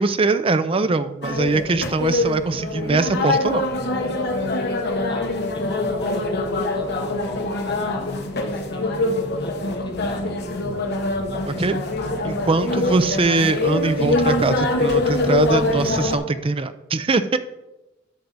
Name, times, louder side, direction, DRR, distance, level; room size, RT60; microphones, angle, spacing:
voice 1, 0.0-3.6 11.5-11.8 12.2-17.4, right 3 dB, 30° right, 11 dB, 0.5 m, -22 dB
sound 1, 1.2-16.2, left 2 dB, 55° left, 1.1 m, -24 dB
voice 2, 5.1-10.4, left 2 dB, 25° left, 3 dB, 1.1 m, -35 dB
11.5 x 6.5 x 4.1 m, 1.0 s
head